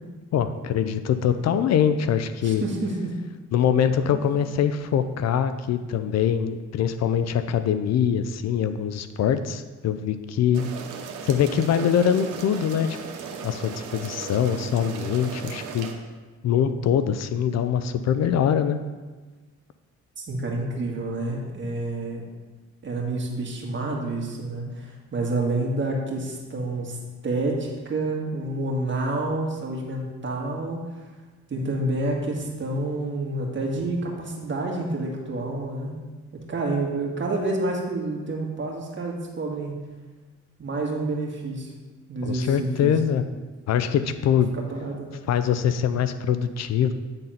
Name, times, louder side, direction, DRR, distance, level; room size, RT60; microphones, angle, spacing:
voice 1, 0.3-2.6 3.5-10.7 11.2-13.0 13.4-15.9 16.4-18.8 42.2-43.2 43.7-44.5 45.3-46.9, left 8 dB, 60° left, 11 dB, 0.5 m, -23 dB
voice 2, 2.4-3.1 4.1-4.2 20.2-22.2 22.8-31.1 31.5-36.0 36.5-39.7 40.6-41.7 42.1-43.0 44.5-45.3, right 2 dB, 40° right, -1 dB, 1.8 m, -29 dB
sound 1, 10.5-15.9, right 6 dB, 85° right, 0.9 m, -37 dB
9.1 x 3.9 x 5.7 m, 1.3 s
cardioid pair, 90°, 30 cm